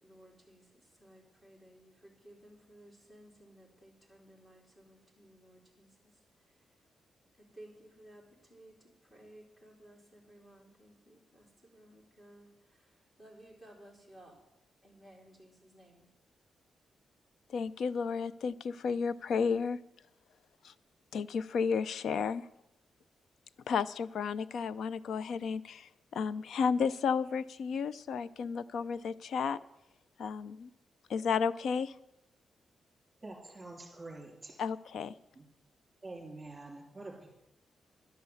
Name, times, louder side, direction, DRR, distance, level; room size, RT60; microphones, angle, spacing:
voice 1, 0.0-6.9 7.4-14.4 14.8-16.1, right 1 dB, 15° left, -1 dB, 3.6 m, -58 dB
voice 2, 17.5-19.8 20.6-20.7 21.1-22.4 23.7-29.6 30.2-30.7 31.1-31.9 34.6-35.1, left 6 dB, 75° left, 17 dB, 0.4 m, -32 dB
voice 3, 33.2-34.6 35.3-35.5 36.0-37.3, right 2 dB, 20° right, -1 dB, 3.1 m, -46 dB
11.5 x 10.5 x 7.0 m, 0.88 s
wide cardioid pair, 155°, 0 cm